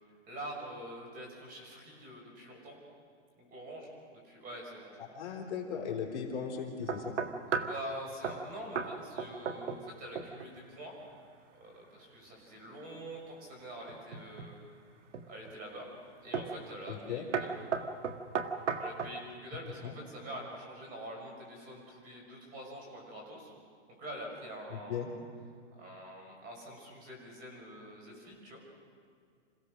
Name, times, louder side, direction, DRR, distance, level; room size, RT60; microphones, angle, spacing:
voice 1, 0.3-2.8 3.4-5.0 7.5-11.0 11.5-14.6 15.3-15.9 16.2-17.5 18.8-23.5 23.9-25.1 25.7-28.6, right 1 dB, 25° right, 0 dB, 5.8 m, -45 dB
voice 2, 5.0-7.2 16.9-17.2 19.8-19.9 24.9-25.1, left 7 dB, 40° left, -1 dB, 3.7 m, -37 dB
sound 1, 6.9-7.8 8.2-8.4 8.8-8.9 9.2-9.9 10.2-10.5 13.9-14.5 15.1-15.5 16.3-16.6 16.9-17.1 17.3-19.2, right 6 dB, 80° right, 1.7 m, -35 dB
28.0 x 16.5 x 6.4 m, 2.3 s
hypercardioid pair, 155°, 35 cm